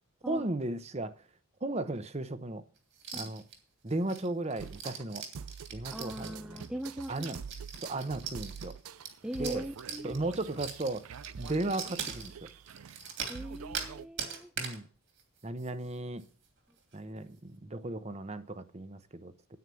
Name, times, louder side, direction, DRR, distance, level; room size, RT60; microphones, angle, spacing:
voice 1, 0.3-1.2 1.6-2.6 3.1-3.4 3.8-5.2 5.7-6.6 7.1-7.4 7.8-8.7 9.4-9.6 10.0-11.0 11.3-12.5 14.6-14.9 15.4-16.2 16.9-19.3, right 2 dB, 30° right, 0.8 m, -35 dB
sound 1, 3.0-3.5 3.9-13.9 14.2-14.8 15.2-15.3 15.6-15.9 16.2-16.3 16.8-17.0, right 6 dB, 55° right, 2.7 m, -41 dB
sound 2, 4.6-14.1, right 6 dB, 75° right, 0.5 m, -46 dB
voice 2, 5.9-7.4 9.2-10.2 13.3-14.5, equal, 5° right, 0.5 m, -40 dB
9.6 x 9.1 x 7.0 m
head